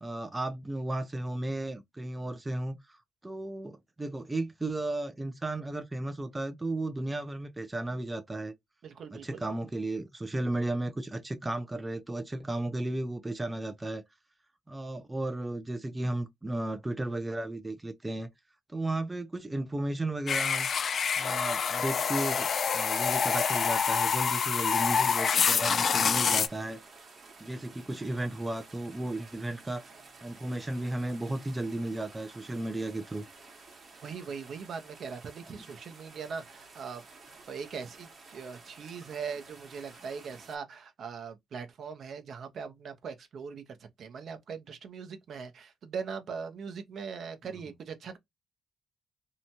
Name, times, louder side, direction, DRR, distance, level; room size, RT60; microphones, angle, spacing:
voice 1, 0.0-3.0 3.2-8.5 9.1-14.0 14.7-18.3 18.7-20.7 21.2-26.8 27.4-29.8 30.2-33.2 35.5-35.6, right 2 dB, 15° right, 0.4 m, -34 dB
voice 2, 8.8-9.4 34.0-37.0 37.5-48.2, right 6 dB, 60° right, 0.6 m, -40 dB
sound 1, 20.3-26.5, left 6 dB, 50° left, 0.3 m, -27 dB
sound 2, 22.4-40.6, right 3 dB, 45° right, 1.0 m, -53 dB
2.7 x 2.2 x 2.7 m
cardioid pair, 95°, 0 cm